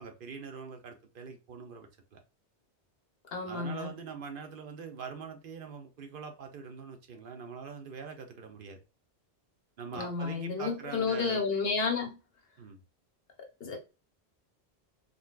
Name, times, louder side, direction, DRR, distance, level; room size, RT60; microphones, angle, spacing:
voice 1, 0.0-2.2 3.5-8.8 9.8-11.4 12.6-12.8, right 5 dB, 60° right, 0.7 m, -43 dB
voice 2, 3.3-3.9 9.9-12.1 13.6-13.8, left 4 dB, 65° left, 1.1 m, -31 dB
3.8 x 2.2 x 2.3 m
omnidirectional pair, 1.1 m